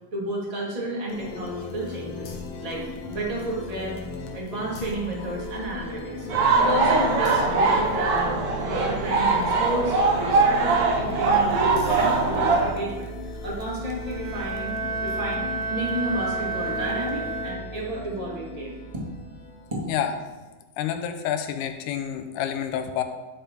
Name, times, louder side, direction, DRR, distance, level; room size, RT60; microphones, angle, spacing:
voice 1, 0.1-2.3 2.6-2.8 3.1-4.0 4.3-6.3 6.6-13.1 13.4-14.7 15.0-18.8, right 1 dB, 50° right, -4 dB, 0.4 m, -31 dB
sound 1, 1.1-20.3, left 2 dB, 70° left, 2.0 m, -37 dB
sound 2, 6.3-12.7, right 3 dB, 70° right, 2.1 m, -21 dB
Bowed string instrument, 14.0-18.0, right 3 dB, 85° right, 2.9 m, -31 dB
voice 2, 20.8-23.0, left 9 dB, 90° left, 7 dB, 2.1 m, -28 dB
10.0 x 3.5 x 4.3 m, 1.2 s
omnidirectional pair, 3.5 m